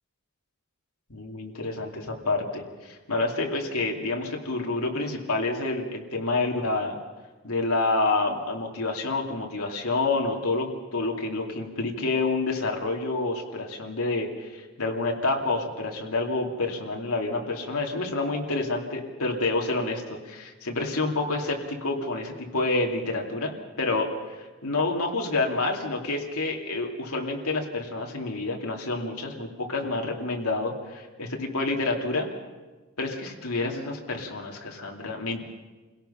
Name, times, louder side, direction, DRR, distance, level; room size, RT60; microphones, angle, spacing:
voice 1, 1.1-6.9 7.4-32.3 33.0-35.4, left 2 dB, 90° left, 1 dB, 2.7 m, -28 dB
28.0 x 17.0 x 5.7 m, 1.3 s
head